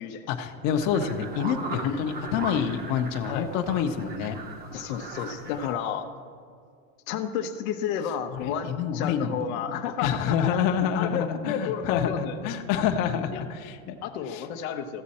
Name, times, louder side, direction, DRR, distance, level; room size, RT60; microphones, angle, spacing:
voice 1, 0.3-4.4 8.4-9.6 10.0-14.0 14.3-14.5, left 8 dB, 50° left, 5 dB, 0.9 m, -27 dB
sound 1, 0.7-5.7, right 3 dB, 20° right, 0.9 m, -39 dB
voice 2, 4.7-6.1 7.1-10.5 10.8-12.5 13.3-13.4 14.0-15.0, left 8 dB, 75° left, 5 dB, 0.9 m, -31 dB
14.5 x 7.4 x 4.2 m, 2.2 s
supercardioid pair, 135°, 41 cm